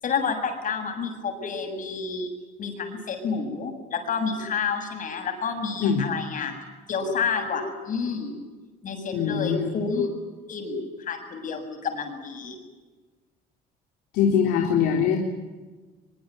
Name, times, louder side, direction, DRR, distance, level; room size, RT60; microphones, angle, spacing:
voice 1, 0.0-2.3 2.6-6.5 6.9-8.3 8.8-10.1 10.5-12.6, left 5 dB, 50° left, 5 dB, 7.5 m, -29 dB
voice 2, 9.1-9.8 14.1-15.2, left 7 dB, 90° left, 3 dB, 3.7 m, -22 dB
24.0 x 23.0 x 9.5 m, 1.3 s
cardioid pair, 110°, 17 cm